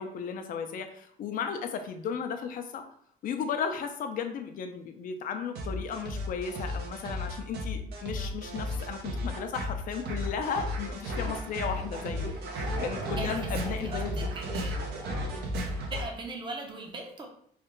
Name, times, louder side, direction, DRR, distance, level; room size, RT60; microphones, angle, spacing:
voice 1, 0.0-2.8 3.2-14.3, left 6 dB, 55° left, 6 dB, 0.5 m, -35 dB
sound 1, 5.6-16.0, equal, 70° right, 0.7 m, -34 dB
voice 2, 13.2-14.8 15.9-17.3, right 3 dB, 30° right, 2 dB, 0.7 m, -39 dB
3.2 x 2.4 x 3.0 m, 0.62 s
cardioid pair, 110°, 17 cm